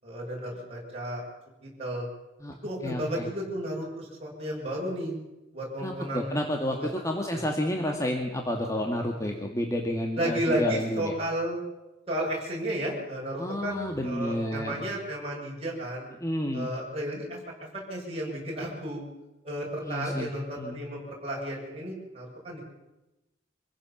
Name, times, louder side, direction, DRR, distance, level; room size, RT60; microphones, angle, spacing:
voice 1, 0.0-1.2 1.6-2.1 2.6-5.2 5.5-6.3 6.7-6.9 7.3-7.4 10.2-11.6 12.1-16.1 16.5-19.0 19.4-22.6, right 1 dB, 35° right, -3 dB, 6.8 m, -33 dB
voice 2, 2.8-3.3 5.8-11.1 13.4-14.8 16.2-16.7 19.8-20.3 20.6-20.8, equal, 15° left, 2 dB, 2.0 m, -30 dB
25.5 x 15.5 x 7.3 m, 1.0 s
head